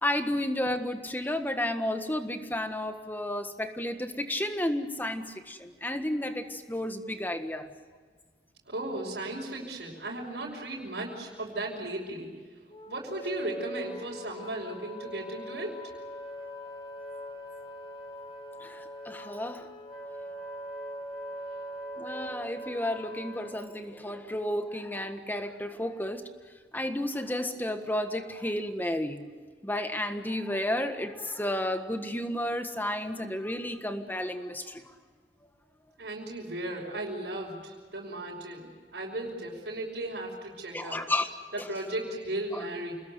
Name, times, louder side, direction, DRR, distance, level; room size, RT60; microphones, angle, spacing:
voice 1, 0.0-7.7 18.6-19.7 22.0-26.3 26.7-29.3 29.6-34.8 40.7-41.3 41.6-41.7 42.5-42.6, left 1 dB, 10° left, 7 dB, 1.6 m, -32 dB
voice 2, 8.7-12.3 12.9-15.8 36.0-41.0 41.5-42.9, right 1 dB, 80° right, -4 dB, 5.4 m, -36 dB
Wind instrument woodwind instrument, 12.7-23.6, equal, 30° left, 4.0 m, -41 dB
28.5 x 20.5 x 7.9 m, 1.5 s
head